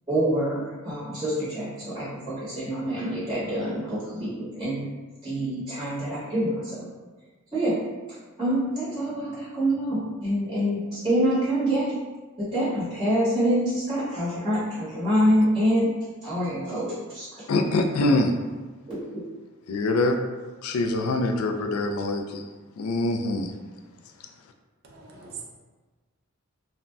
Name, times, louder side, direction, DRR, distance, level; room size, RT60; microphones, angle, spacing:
voice 1, 0.1-4.9 5.2-6.9 7.5-7.7 8.4-12.0 12.4-15.9 16.2-17.2 18.9-19.2, equal, 20° right, -11 dB, 1.0 m, -26 dB
voice 2, 17.5-18.4 19.7-20.2 20.6-22.4 22.8-23.5, left 2 dB, 85° left, 5 dB, 0.3 m, -24 dB
voice 3, 24.8-25.4, right 6 dB, 50° right, -1 dB, 0.4 m, -41 dB
2.5 x 2.1 x 3.2 m, 1.3 s
head